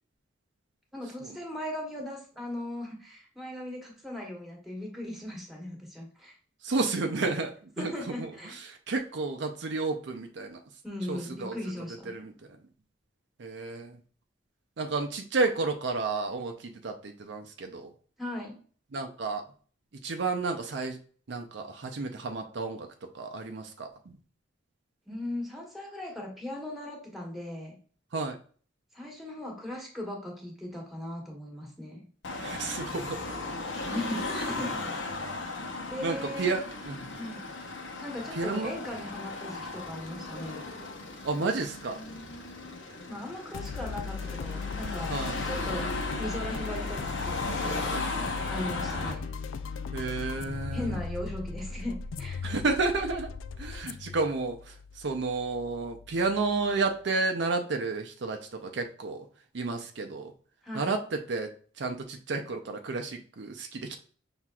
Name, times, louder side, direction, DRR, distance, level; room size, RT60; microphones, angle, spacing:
voice 1, 0.9-6.3 7.8-8.6 10.8-12.1 18.2-18.6 25.1-27.8 28.9-32.1 33.9-34.8 35.9-36.6 37.2-37.4 38.0-40.6 43.1-45.9 46.2-48.0 48.5-49.3 50.7-52.5 60.6-61.0, left 1 dB, ahead, 0 dB, 1.3 m, -38 dB
voice 2, 6.6-7.9 8.2-10.6 11.1-11.5 12.1-12.3 13.4-14.0 14.8-17.9 18.9-19.4 20.0-21.0 21.3-22.9 23.1-23.9 28.1-28.4 32.4-33.2 33.8-33.9 36.0-37.0 38.4-38.7 41.2-42.0 45.1-45.4 49.9-50.9 52.4-53.3 53.6-59.2 59.5-60.3 60.7-61.0 61.3-61.5 61.8-64.0, right 3 dB, 65° right, 4 dB, 0.6 m, -31 dB
Car passing by / Traffic noise roadway noise / Engine, 32.2-49.1, left 3 dB, 70° left, 0.9 m, -36 dB
sound 1, 43.5-56.9, left 5 dB, 85° left, 0.4 m, -38 dB
5.8 x 3.5 x 2.3 m, 0.43 s
head